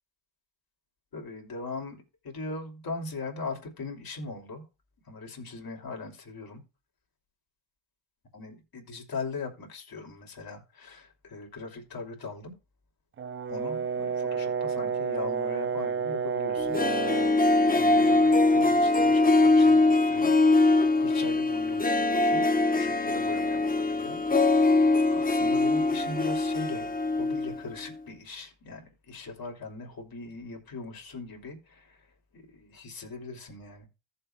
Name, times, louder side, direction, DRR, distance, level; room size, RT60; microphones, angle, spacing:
voice 1, 1.1-4.6 5.0-6.6 8.3-12.5 13.5-16.8 17.7-20.3 21.0-22.5 22.7-24.2 24.7-26.9 27.2-33.9, left 3 dB, 45° left, 2.7 m, -40 dB
Brass instrument, 13.2-17.4, right 5 dB, 30° right, 0.5 m, -30 dB
Harp, 16.6-27.6 27.9-28.0, left 2 dB, 20° left, 0.9 m, -22 dB
15.0 x 6.8 x 2.2 m
cardioid pair, 70°, 47 cm